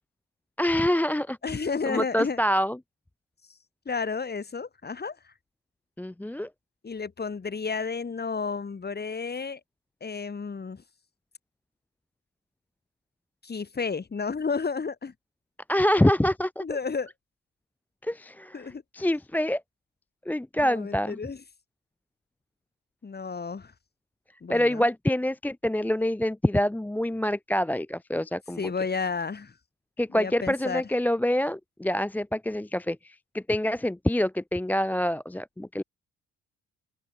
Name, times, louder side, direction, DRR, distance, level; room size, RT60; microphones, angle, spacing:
voice 1, 0.6-1.6 1.8-2.8 6.0-6.5 15.7-16.6 18.0-19.6 20.3-21.2 24.5-28.7 30.0-35.8, left 1 dB, 5° left, 0.6 m, -26 dB
voice 2, 1.4-2.4 3.8-5.3 6.8-9.6 10.0-10.8 13.4-15.1 16.6-17.1 18.5-18.8 20.6-21.4 23.0-23.7 24.4-24.9 28.6-29.6 30.1-30.8, left 5 dB, 35° left, 4.9 m, -32 dB
open air
cardioid pair, 90°, 30 cm